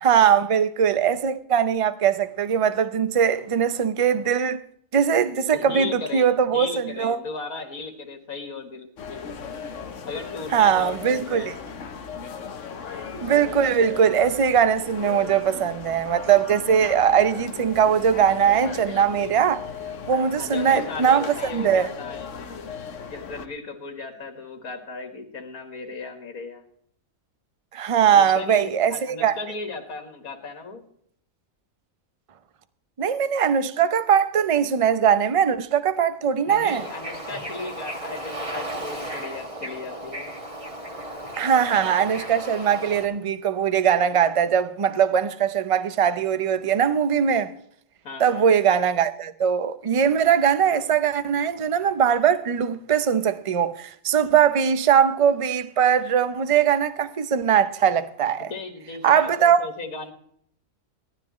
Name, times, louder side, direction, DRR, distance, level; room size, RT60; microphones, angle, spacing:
voice 1, 0.0-4.6 4.9-7.2 10.5-11.5 13.2-19.6 20.1-21.9 27.7-29.3 33.0-36.8 41.4-47.5 48.2-58.5 59.0-59.6, right 8 dB, 40° right, 0.4 m, -21 dB
voice 2, 5.5-8.9 10.0-11.5 15.5-15.7 20.3-22.3 23.1-26.6 28.1-30.8 36.5-40.3 48.0-48.5 58.5-60.1, left 3 dB, 80° left, 2.2 m, -36 dB
sound 1, 9.0-23.5, left 6 dB, 60° left, 1.3 m, -37 dB
Bird / Ocean, 36.6-43.1, right 1 dB, 25° right, 2.0 m, -35 dB
17.5 x 12.5 x 3.1 m
omnidirectional pair, 1.5 m